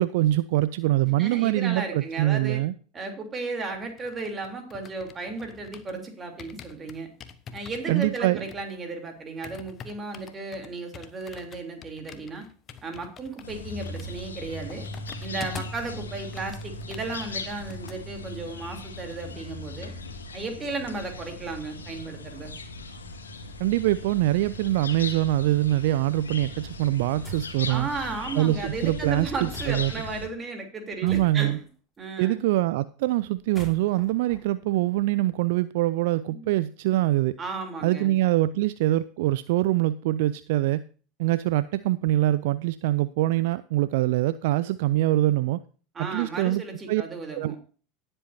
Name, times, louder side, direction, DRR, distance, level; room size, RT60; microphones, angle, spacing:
voice 1, 0.0-2.7 7.9-8.4 23.6-27.9 28.4-29.9 31.0-31.6 32.2-37.3 37.8-40.8 41.2-45.6 46.0-46.6 46.9-47.0 47.3-47.6, right 15 dB, 55° right, 17 dB, 0.4 m, -24 dB
voice 2, 1.2-2.6 2.9-7.1 7.5-12.4 12.8-14.9 15.2-19.9 20.3-22.5 27.7-31.6 32.0-32.4 36.3-36.5 37.4-38.1 45.9-47.6, right 3 dB, 25° right, 4 dB, 3.4 m, -34 dB
sound 1, 3.7-6.0 6.4-15.9 16.2-18.0 18.3-18.5, left 7 dB, 35° left, 1.1 m, -46 dB
sound 2, 13.4-30.3, left 2 dB, 75° left, 2.0 m, -39 dB
sound 3, 27.2-27.6 29.5-30.0 31.0-31.7 33.4-35.3, right 3 dB, 5° left, 5.3 m, -44 dB
18.0 x 7.8 x 2.8 m, 0.39 s
figure-of-eight pair, 75°, 0 cm